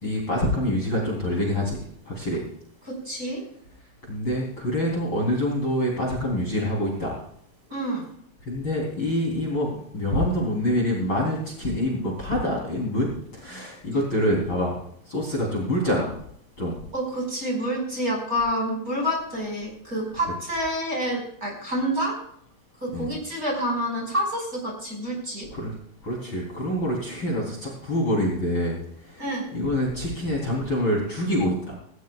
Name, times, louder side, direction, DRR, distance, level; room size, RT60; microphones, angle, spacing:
voice 1, 0.0-1.8 2.1-2.4 4.1-7.2 8.5-14.8 15.1-16.1 16.6-16.8 22.9-23.1 25.5-25.7 26.0-29.2 29.5-31.7, left 1 dB, 30° left, -3 dB, 3.9 m, -26 dB
voice 2, 2.9-3.4 7.7-8.1 16.9-22.2 22.8-25.5 29.2-29.5, equal, 20° right, -1 dB, 5.2 m, -28 dB
19.0 x 17.0 x 2.4 m, 0.67 s
omnidirectional pair, 4.6 m